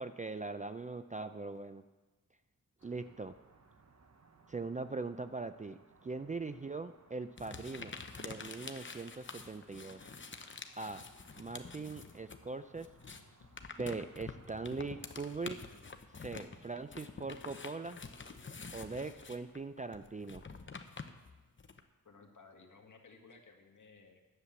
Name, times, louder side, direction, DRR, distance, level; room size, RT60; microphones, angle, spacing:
voice 1, 0.0-1.8 2.8-3.3 4.5-10.1 10.8-11.0 11.4-13.2 13.8-15.6 16.2-18.0 18.7-20.4, right 3 dB, 20° right, 10 dB, 0.4 m, -41 dB
sound 1, 2.8-15.6, right 4 dB, 45° right, 1.1 m, -65 dB
sound 2, 7.4-12.4 12.7-21.8, left 4 dB, 35° left, 0.9 m, -48 dB
voice 2, 22.1-24.2, left 4 dB, 55° left, 2 dB, 1.8 m, -58 dB
10.0 x 7.5 x 8.3 m, 1.3 s
wide cardioid pair, 85°, 36 cm